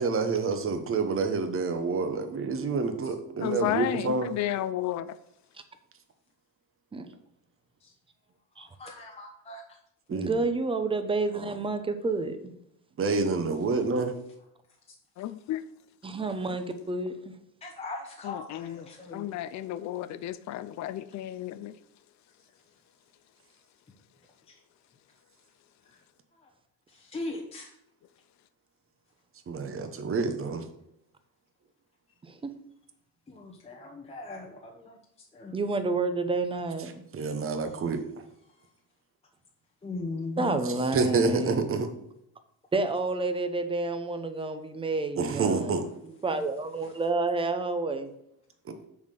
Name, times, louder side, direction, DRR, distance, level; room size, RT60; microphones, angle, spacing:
voice 1, 0.0-4.3 10.1-10.3 13.0-14.1 29.5-30.6 37.1-38.0 40.9-41.9 45.2-45.8 48.7-48.8, right 4 dB, 35° right, 1.1 m, -28 dB
voice 2, 3.4-5.2 15.2-15.6 18.2-18.9 19.1-21.8, left 12 dB, 50° left, 0.5 m, -32 dB
voice 3, 8.6-9.6 17.6-19.2 26.9-27.7 33.3-34.9 35.3-35.6 39.8-40.6, left 2 dB, 15° left, 0.9 m, -39 dB
voice 4, 10.1-12.4 16.0-17.3 32.2-32.4 35.5-36.9 40.4-41.7 42.7-45.8 46.2-48.1, right 3 dB, 15° right, 0.7 m, -29 dB
7.1 x 4.3 x 6.5 m
cardioid pair, 135°, 36 cm